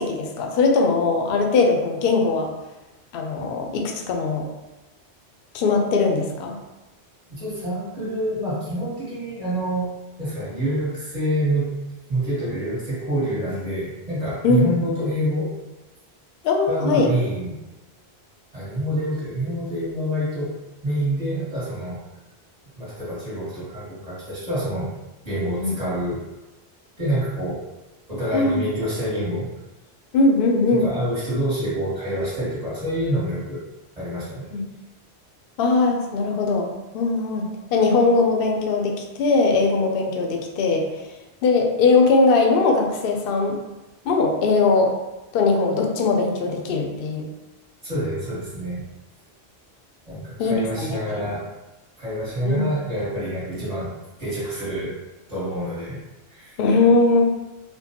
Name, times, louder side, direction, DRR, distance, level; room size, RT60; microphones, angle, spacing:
voice 1, 0.0-2.5 3.1-4.5 5.5-6.5 14.4-14.7 16.4-17.1 25.6-25.8 28.3-28.7 30.1-30.9 34.5-34.6 35.6-40.8 41.4-43.6 44.1-44.9 45.3-47.2 50.4-51.3 52.4-52.7 56.6-57.2, left 3 dB, 65° left, 2 dB, 0.7 m, -20 dB
voice 2, 7.3-9.9 10.2-11.8 12.1-15.6 16.7-17.5 18.5-22.0 22.8-24.9 25.2-26.2 27.0-27.7 28.1-29.5 30.7-33.6 34.0-34.5 47.8-48.8 50.1-51.5 52.0-53.9 54.2-55.0 55.3-56.0 56.3-56.6, right 1 dB, 35° right, -9 dB, 1.6 m, -27 dB
4.4 x 2.2 x 2.8 m, 1.0 s
omnidirectional pair, 1.1 m